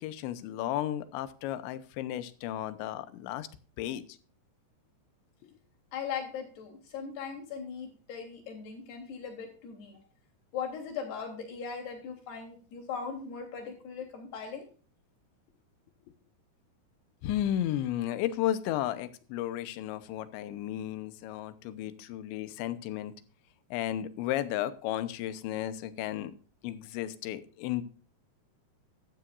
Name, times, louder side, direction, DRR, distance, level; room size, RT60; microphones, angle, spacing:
voice 1, 0.0-3.5 3.8-4.2 5.4-5.5 17.2-23.1 23.7-26.3 26.6-27.8, left 12 dB, 85° left, 13 dB, 3.2 m, -33 dB
voice 2, 5.9-10.0 10.5-14.7, left 6 dB, 65° left, 1 dB, 5.3 m, -39 dB
14.0 x 13.0 x 2.5 m, 0.40 s
omnidirectional pair, 5.1 m